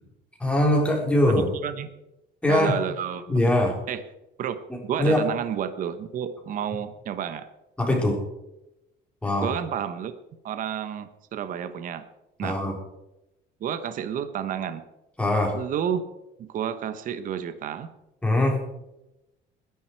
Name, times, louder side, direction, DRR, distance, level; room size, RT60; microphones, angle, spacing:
voice 1, 0.4-1.5 2.4-2.8 3.3-3.7 4.7-5.3 7.8-8.2 9.2-9.5 12.4-12.8 15.2-15.6 18.2-18.6, left 1 dB, 5° left, 0 dB, 3.9 m, -22 dB
voice 2, 1.3-1.9 2.5-3.2 3.9-4.0 4.4-4.6 4.8-7.5 9.4-10.1 10.4-12.0 12.4-12.6 13.6-14.8 15.5-16.0 16.4-17.9, right 9 dB, 45° right, 10 dB, 1.2 m, -30 dB
21.0 x 10.5 x 4.7 m, 0.91 s
cardioid pair, 165°, 19 cm